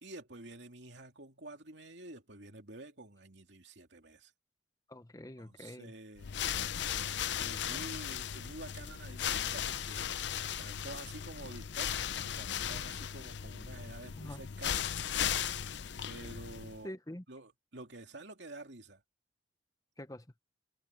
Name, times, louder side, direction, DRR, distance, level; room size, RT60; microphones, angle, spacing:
voice 1, 0.0-4.3 5.4-6.4 7.4-10.2 10.6-14.9 16.1-17.0 17.3-19.0, right 2 dB, 65° right, 2.6 m, -49 dB
voice 2, 4.9-5.9 14.2-14.4 16.8-17.2 20.0-20.3, left 1 dB, 20° left, 0.9 m, -45 dB
sound 1, 6.2-16.8, left 9 dB, 65° left, 0.6 m, -37 dB
head